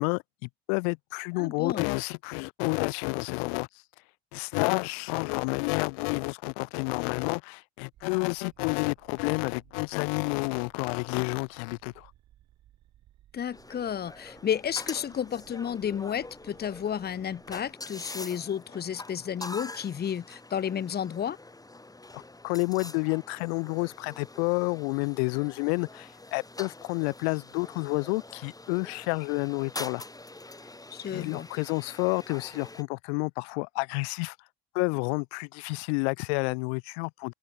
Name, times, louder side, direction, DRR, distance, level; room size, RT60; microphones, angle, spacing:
voice 1, 0.0-3.7 4.3-12.1 22.1-30.0 31.0-34.4 34.7-37.3, left 39 dB, 85° left, 0.5 m, -30 dB
voice 2, 1.4-1.9 13.3-21.4 30.9-31.5, left 8 dB, 30° left, 0.8 m, -32 dB
sound 1, 7.9-17.8, right 13 dB, 60° right, 5.7 m, -61 dB
sound 2, 13.5-32.8, left 2 dB, 10° left, 2.5 m, -45 dB
open air
supercardioid pair, 75°, 31 cm